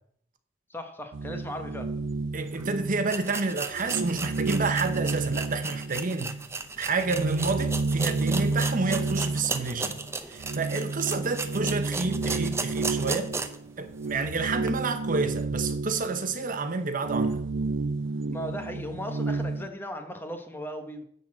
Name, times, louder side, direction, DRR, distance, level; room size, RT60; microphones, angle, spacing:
voice 1, 0.7-1.9 14.2-14.4 18.3-21.0, equal, 10° left, 1.0 m, -37 dB
sound 1, 1.1-3.4 3.7-6.5 6.8-19.7, right 3 dB, 85° right, 0.5 m, -31 dB
voice 2, 2.3-6.4 6.8-10.0 10.3-13.3 13.8-17.4, right 4 dB, 45° right, 0.8 m, -29 dB
sound 2, 2.5-2.6 3.1-13.7 14.0-14.1 14.6-14.7, right 3 dB, 15° right, 0.6 m, -35 dB
10.5 x 4.0 x 7.4 m
head